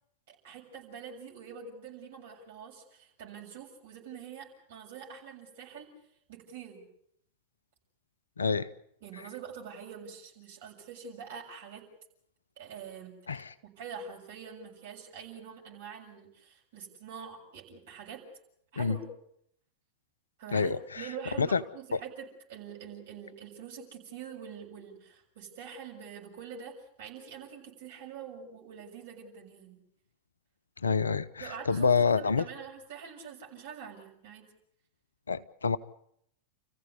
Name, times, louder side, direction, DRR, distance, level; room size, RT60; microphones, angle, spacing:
voice 1, 0.3-5.9 6.3-6.8 9.0-11.8 12.6-13.4 13.6-18.2 18.7-19.1 20.4-29.8 31.4-34.4, right 7 dB, 55° right, 0 dB, 7.1 m, -45 dB
voice 2, 8.4-8.7 13.3-13.5 18.8-19.0 20.5-21.1 21.4-21.6 21.9-22.0 30.8-32.5 35.3-35.8, left 5 dB, 75° left, 16 dB, 0.8 m, -27 dB
29.5 x 15.5 x 8.3 m, 0.71 s
figure-of-eight pair, 90°, 0 cm